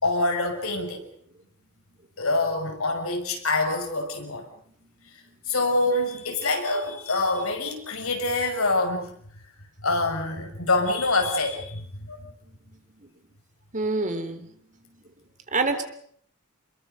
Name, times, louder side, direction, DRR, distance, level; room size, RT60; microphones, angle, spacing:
voice 1, 0.0-1.1 2.2-4.5 5.5-9.1 9.8-12.2, left 2 dB, 80° left, 4 dB, 6.0 m, -25 dB
voice 2, 13.7-14.5 15.5-15.8, right 3 dB, 35° right, 8 dB, 3.4 m, -26 dB
29.5 x 22.0 x 6.8 m, 0.66 s
head